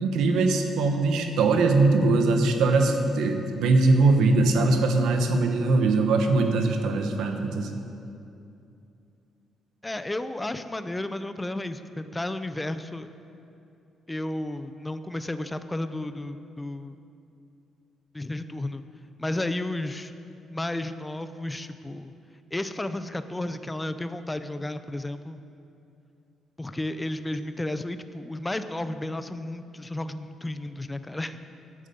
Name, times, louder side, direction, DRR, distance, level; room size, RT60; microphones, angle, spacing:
voice 1, 0.0-7.7, right 3 dB, 80° right, 5 dB, 1.0 m, -21 dB
voice 2, 9.8-13.1 14.1-16.9 18.1-18.8 19.2-20.1 20.5-22.1 22.5-25.4 26.6-31.4, left 1 dB, 15° left, 10 dB, 0.5 m, -32 dB
11.0 x 8.3 x 5.2 m, 2.7 s
cardioid pair, 90°, 0 cm